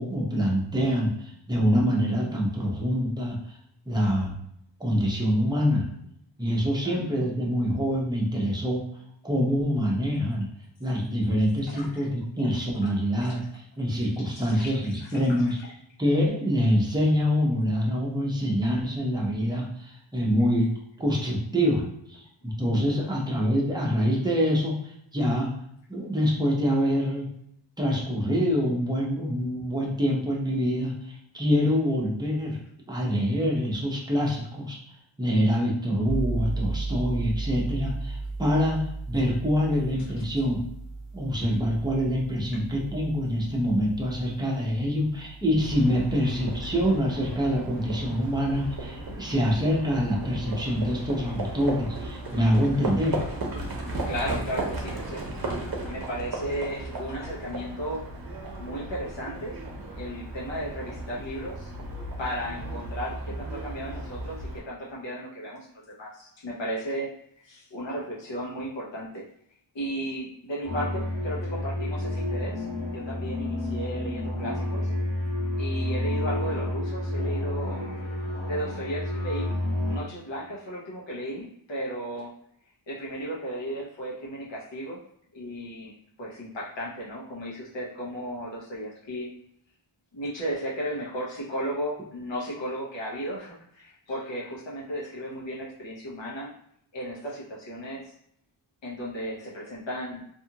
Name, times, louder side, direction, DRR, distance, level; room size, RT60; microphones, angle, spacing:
voice 1, 0.0-3.6 3.9-4.4 4.8-5.9 6.4-8.8 9.2-10.5 10.8-15.6 16.0-20.7 21.0-24.8 25.1-25.5 25.9-27.3 27.8-32.6 32.9-34.8 35.2-40.6 41.1-53.2, equal, 10° right, -3 dB, 0.7 m, -25 dB
voice 2, 14.3-15.2 15.5-15.7 23.0-23.1 54.0-58.0 58.6-59.6 59.9-61.7 62.2-67.1 67.4-69.2 69.7-72.7 72.9-74.9 75.6-77.8 78.5-79.6 79.9-82.3 82.9-85.0 85.3-85.9 86.2-89.3 90.1-96.5 96.9-98.1 98.8-100.2, equal, 75° left, -4 dB, 0.9 m, -35 dB
sound 1, 36.1-46.7, right 3 dB, 55° left, 1.2 m, -36 dB
Livestock farm animals working animals, 45.6-64.6, right 2 dB, 50° right, 0.7 m, -35 dB
sound 2, 70.6-80.0, left 1 dB, 35° left, 0.9 m, -30 dB
2.6 x 2.4 x 2.8 m, 0.71 s
wide cardioid pair, 100°, 45 cm